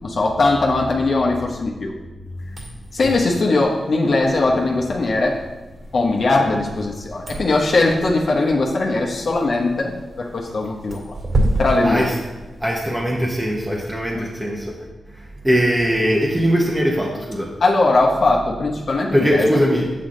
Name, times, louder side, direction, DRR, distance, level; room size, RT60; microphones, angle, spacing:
voice 1, 0.0-1.9 2.9-5.4 5.9-9.9 10.2-11.2 11.6-12.1 14.1-14.3 17.6-19.6, left 2 dB, 60° left, -1 dB, 1.0 m, -19 dB
sound 1, 2.4-12.9, right 1 dB, 45° right, 2.4 m, -30 dB
voice 2, 12.6-14.8 15.2-17.5 19.1-19.9, equal, 10° right, -2 dB, 1.1 m, -20 dB
7.7 x 7.1 x 3.9 m, 1.2 s
cardioid pair, 70°, 0 cm